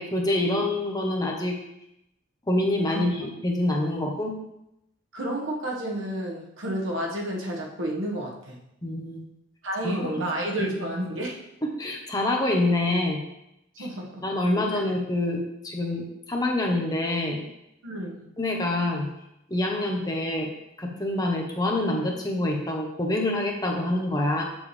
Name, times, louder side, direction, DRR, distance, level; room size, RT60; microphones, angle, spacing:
voice 1, 0.0-1.6 2.5-4.4 8.8-9.2 9.8-10.1 11.6-13.2 13.8-13.9 14.2-15.4 15.6-17.4 18.4-19.1 19.5-20.5 20.8-24.4, left 1 dB, 20° left, 0 dB, 1.0 m, -26 dB
voice 2, 5.1-8.6 9.6-11.4 13.7-14.2 17.8-18.3, right 1 dB, 75° right, -1 dB, 1.5 m, -30 dB
7.1 x 7.0 x 3.3 m, 0.83 s
head